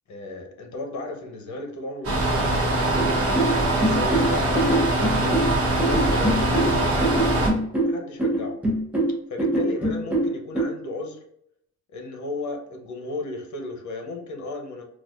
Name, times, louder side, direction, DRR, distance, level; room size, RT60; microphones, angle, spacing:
voice 1, 0.1-3.2 3.8-8.6 9.3-11.2 11.9-14.8, left 2 dB, 75° left, 3 dB, 0.8 m, -34 dB
sound 1, 2.0-7.5, right 1 dB, 55° right, 1.0 m, -22 dB
sound 2, 2.9-10.6, right 1 dB, 5° right, 0.8 m, -24 dB
4.1 x 2.3 x 2.4 m, 0.72 s
wide cardioid pair, 165°, 29 cm